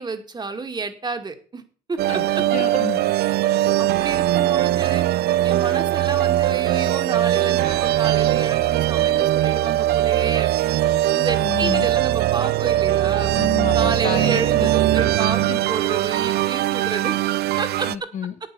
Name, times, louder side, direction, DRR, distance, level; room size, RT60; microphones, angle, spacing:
voice 1, 0.0-1.6 1.9-2.4 3.8-5.1 5.4-10.5 11.1-13.3 13.7-17.2 17.6-17.9, right 4 dB, 25° right, 2.2 m, -30 dB
sound 1, 2.0-17.9, right 14 dB, 70° right, 0.5 m, -20 dB
voice 2, 2.5-3.0 11.4-11.9 13.3-15.6 17.8-18.4, left 8 dB, 45° left, 1.0 m, -31 dB
9.9 x 8.8 x 6.9 m
cardioid pair, 110°, 17 cm